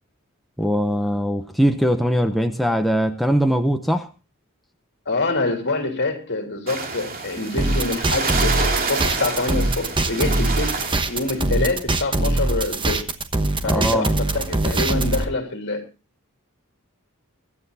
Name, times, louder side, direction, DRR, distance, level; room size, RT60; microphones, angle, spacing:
voice 1, 0.6-4.1 13.7-14.1, equal, ahead, 0.8 m, -21 dB
voice 2, 5.0-13.1 13.6-15.9, left 3 dB, 55° left, 3.2 m, -26 dB
sound 1, 6.7-11.4, right 4 dB, 45° right, 2.5 m, -28 dB
sound 2, 7.6-15.2, right 2 dB, 25° right, 1.1 m, -22 dB
24.5 x 12.5 x 2.7 m
head